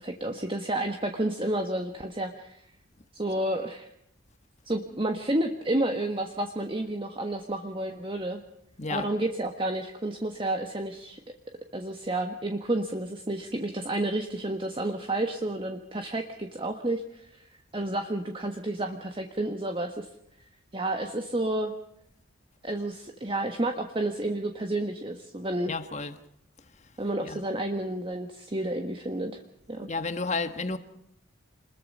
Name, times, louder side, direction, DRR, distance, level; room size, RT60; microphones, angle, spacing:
voice 1, 0.0-2.6 3.1-3.9 4.6-8.4 8.9-11.2 11.7-17.4 17.7-20.1 20.7-21.7 22.6-25.7 27.0-29.3 29.7-29.9, right 1 dB, 25° right, 1.5 m, -30 dB
voice 2, 8.8-9.1 25.7-26.2 27.2-27.4 29.8-30.8, left 3 dB, 35° left, 1.5 m, -31 dB
27.0 x 21.5 x 5.5 m
head